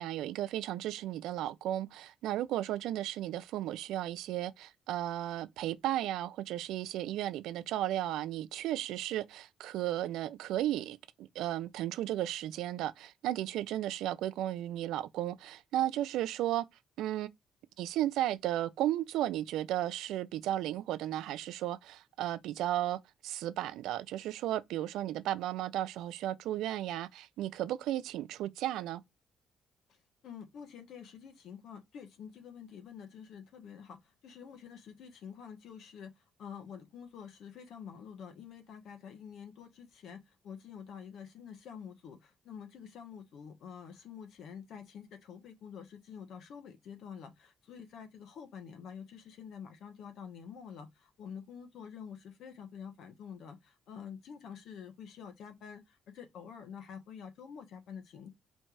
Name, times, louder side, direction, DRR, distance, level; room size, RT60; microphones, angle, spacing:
voice 1, 0.0-16.6 17.0-17.3 17.8-29.0, right 13 dB, 90° right, 0.4 m, -34 dB
voice 2, 30.2-58.3, left 7 dB, 75° left, 1.2 m, -48 dB
4.4 x 2.6 x 4.5 m
cardioid pair, 90°, 0 cm